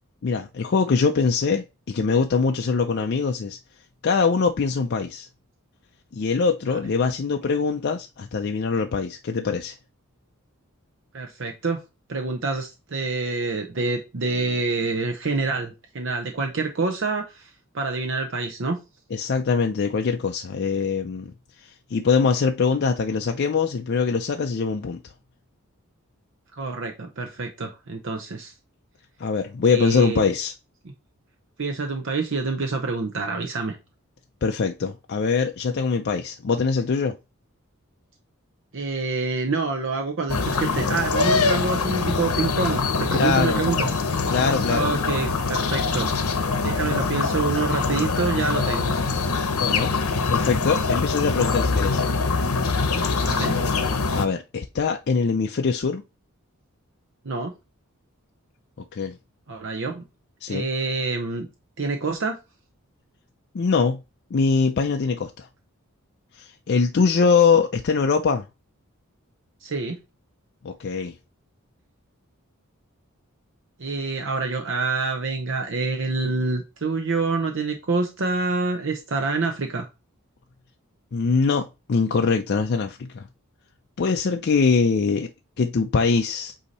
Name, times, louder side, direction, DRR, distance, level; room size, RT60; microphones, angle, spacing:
voice 1, 0.2-3.6 4.0-5.3 6.1-9.7 19.1-21.3 21.6-25.0 29.2-30.5 34.4-37.2 43.2-43.6 44.3-44.9 49.6-49.9 50.3-52.0 54.1-56.0 58.9-59.2 60.4-60.7 63.5-64.0 64.3-65.5 66.3-68.5 70.6-71.2 81.1-83.3 84.0-85.3 85.6-86.5, left 5 dB, 50° left, 0.4 m, -23 dB
voice 2, 11.1-11.8 12.1-18.8 26.5-28.5 29.7-30.3 31.6-33.8 38.7-44.0 44.7-46.3 46.6-48.9 53.2-53.5 57.2-57.5 59.5-60.0 60.5-61.5 61.8-62.4 69.6-70.0 73.8-79.9, right 3 dB, 60° right, 0.7 m, -27 dB
sound 1, 40.3-54.3, left 4 dB, 85° left, 0.9 m, -24 dB
8.1 x 2.8 x 4.1 m
head